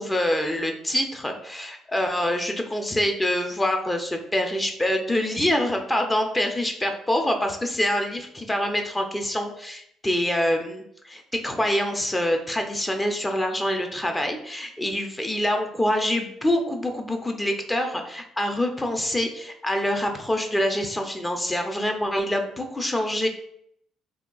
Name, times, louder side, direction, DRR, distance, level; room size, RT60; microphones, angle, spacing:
voice 1, 0.0-23.3, left 1 dB, 15° left, 4 dB, 0.4 m, -25 dB
3.5 x 2.2 x 2.3 m, 0.70 s
cardioid pair, 85°, 0 cm